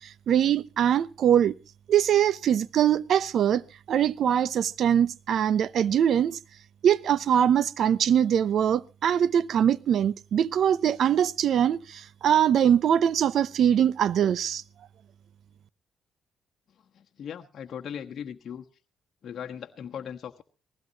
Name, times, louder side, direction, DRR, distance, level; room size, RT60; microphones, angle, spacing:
voice 1, 0.3-1.5 1.9-6.4 6.8-14.6, right 9 dB, 65° right, 0.7 m, -22 dB
voice 2, 16.9-18.6 19.2-20.4, left 8 dB, 60° left, 1.2 m, -38 dB
19.5 x 15.5 x 2.9 m
cardioid pair, 90°, 0 cm